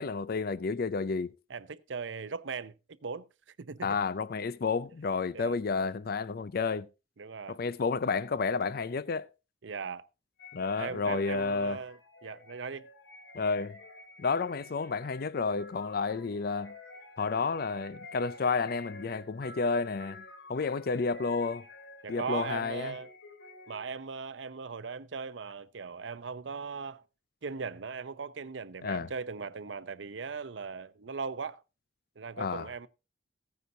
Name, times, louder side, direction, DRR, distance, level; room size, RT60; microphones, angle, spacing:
voice 1, 0.0-1.3 3.8-6.9 7.5-9.3 10.5-11.8 13.3-13.8 14.2-16.7 17.2-20.2 20.5-21.7 22.1-22.9 28.8-29.1 32.4-32.7, left 4 dB, 55° left, 0.5 m, -31 dB
voice 2, 1.5-2.7 3.0-3.3 3.6-4.0 5.3-5.6 7.2-7.6 9.6-10.1 10.8-12.9 22.0-23.1 23.7-27.0 27.4-31.6 32.2-32.9, right 5 dB, 80° right, 0.7 m, -39 dB
sound 1, 10.4-24.0, left 2 dB, 70° left, 2.3 m, -50 dB
15.5 x 9.5 x 2.7 m
head